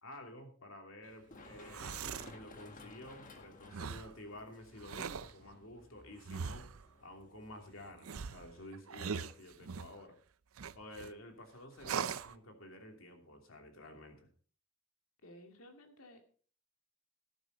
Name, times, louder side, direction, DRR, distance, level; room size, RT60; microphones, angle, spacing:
voice 1, 0.0-6.7 7.0-10.2 10.7-14.3, left 1 dB, 75° left, 4 dB, 2.8 m, -51 dB
Run, 1.0-8.6, left 2 dB, 40° left, 1.6 m, -57 dB
sound 1, 1.5-2.4 3.7-4.1 4.8-5.3 6.3-6.8 8.0-10.0 10.6-11.1 11.8-12.3, right 6 dB, 85° right, 0.5 m, -41 dB
voice 2, 15.2-16.2, left 1 dB, 90° left, 4 dB, 2.2 m, -55 dB
13.5 x 11.0 x 4.0 m, 0.42 s
head